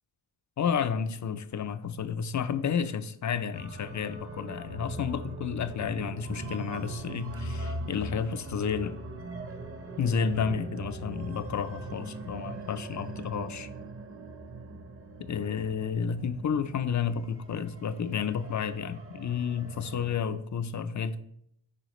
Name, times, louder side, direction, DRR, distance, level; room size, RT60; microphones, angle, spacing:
voice 1, 0.6-9.0 10.0-13.7 15.2-21.2, left 7 dB, 40° left, 13 dB, 0.4 m, -31 dB
sound 1, 3.5-20.2, right 2 dB, 30° right, 0.8 m, -41 dB
9.8 x 5.0 x 3.1 m, 0.73 s
wide cardioid pair, 120°, 48 cm